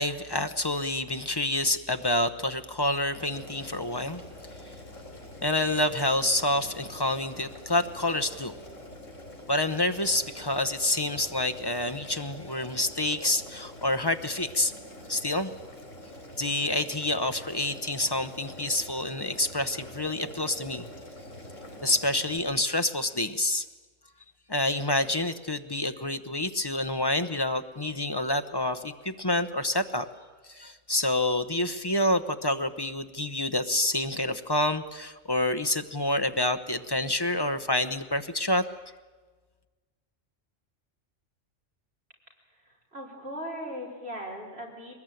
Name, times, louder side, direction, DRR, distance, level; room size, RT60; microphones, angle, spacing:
voice 1, 0.0-4.2 5.4-8.5 9.5-14.8 15.1-15.5 16.4-20.9 21.8-23.7 24.5-30.1 30.5-38.7, left 1 dB, 20° left, 9 dB, 0.8 m, -28 dB
Boiling, 3.2-22.4, left 1 dB, 80° left, 4.7 m, -45 dB
voice 2, 42.6-45.0, equal, 50° right, -1 dB, 5.2 m, -38 dB
22.5 x 20.5 x 9.2 m, 1.4 s
omnidirectional pair, 1.3 m